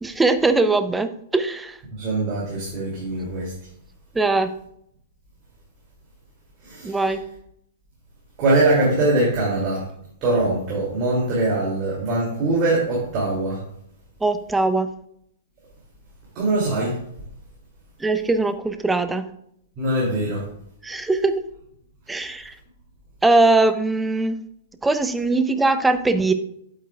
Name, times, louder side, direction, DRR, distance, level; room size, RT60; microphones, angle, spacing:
voice 1, 0.0-1.8 4.1-4.5 6.8-7.2 14.2-14.9 18.0-19.2 20.8-21.4 22.1-22.5 23.2-24.4 24.8-26.3, right 3 dB, 10° right, 10 dB, 0.6 m, -20 dB
voice 2, 1.9-3.5 6.6-6.9 8.4-9.8 10.2-13.6 16.3-17.0 19.8-20.4, right 2 dB, 35° right, -5 dB, 2.6 m, -22 dB
8.7 x 8.1 x 2.3 m, 0.71 s
figure-of-eight pair, 105°, 0 cm